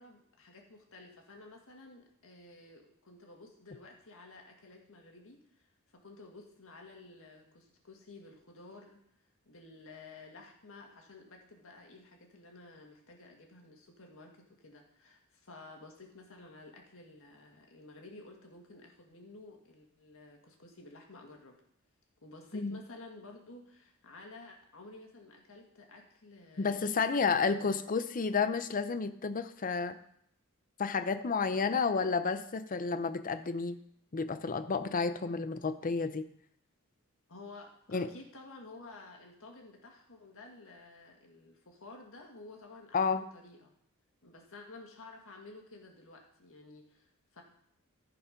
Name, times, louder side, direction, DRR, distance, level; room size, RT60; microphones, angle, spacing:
voice 1, 0.0-9.0 9.5-21.6 22.2-26.8 27.4-27.8 37.3-43.7 44.2-47.4, left 2 dB, 65° left, 1 dB, 1.9 m, -52 dB
voice 2, 26.6-30.0 30.8-33.8 34.1-36.3 37.9-38.1 42.9-43.3, left 5 dB, 40° left, 11 dB, 0.6 m, -31 dB
14.5 x 4.9 x 5.2 m, 0.69 s
head